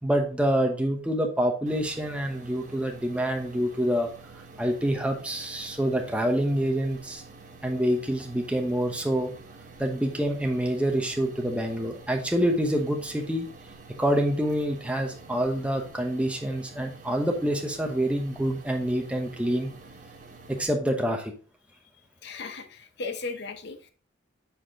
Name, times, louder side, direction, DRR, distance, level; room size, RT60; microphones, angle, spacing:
voice 1, 0.0-4.1 4.6-7.2 7.6-9.3 9.8-13.5 14.0-19.7 20.5-21.3, equal, 5° right, 3 dB, 0.9 m, -26 dB
sound 1, 1.7-20.7, right 3 dB, 40° right, 1.2 m, -48 dB
voice 2, 22.2-23.9, left 3 dB, 55° left, 8 dB, 0.8 m, -36 dB
7.2 x 4.3 x 3.6 m, 0.40 s
head